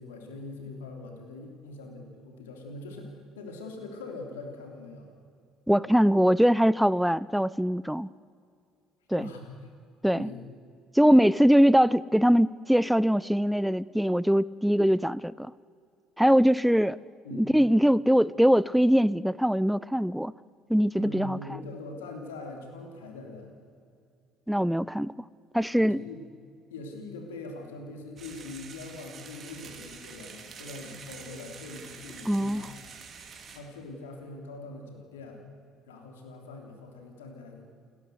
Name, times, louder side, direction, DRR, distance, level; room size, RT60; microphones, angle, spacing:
voice 1, 0.0-5.1 9.1-9.5 10.1-10.4 17.2-17.5 21.0-23.5 25.7-26.2 26.7-32.8 33.5-35.4 35.9-37.7, left 2 dB, 75° left, 3.1 m, -42 dB
voice 2, 5.7-8.1 9.1-9.3 10.0-10.3 10.9-15.5 16.2-17.0 17.3-20.3 20.7-21.4 24.5-25.1 25.5-26.0 32.3-32.6, equal, ahead, 0.4 m, -22 dB
sound 1, 28.2-33.6, right 6 dB, 40° right, 2.7 m, -46 dB
29.0 x 12.0 x 8.0 m
figure-of-eight pair, 55°, 0 cm